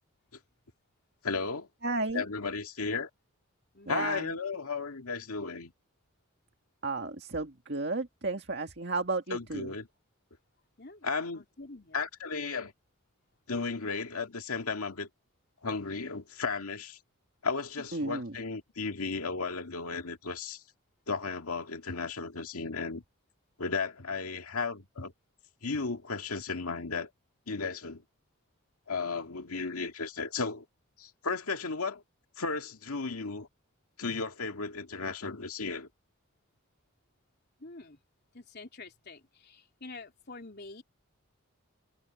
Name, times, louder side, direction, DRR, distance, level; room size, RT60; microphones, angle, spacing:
voice 1, 1.2-1.7 2.1-3.1 3.9-5.7 9.3-9.9 11.0-11.4 11.9-12.7 13.5-15.1 15.6-17.0 17.4-20.6 21.1-23.0 23.6-25.1 25.6-27.1 27.5-28.0 28.9-30.6 31.0-32.0 32.4-33.5 34.0-35.9, left 4 dB, 85° left, 2.0 m, -34 dB
voice 2, 1.8-2.2 3.9-4.3 6.8-9.7 17.9-18.3, right 3 dB, 50° right, 2.0 m, -33 dB
voice 3, 3.7-4.1 10.8-11.1 11.3-12.0 17.8-17.9 37.6-38.0 38.3-40.8, left 3 dB, 50° left, 3.7 m, -47 dB
head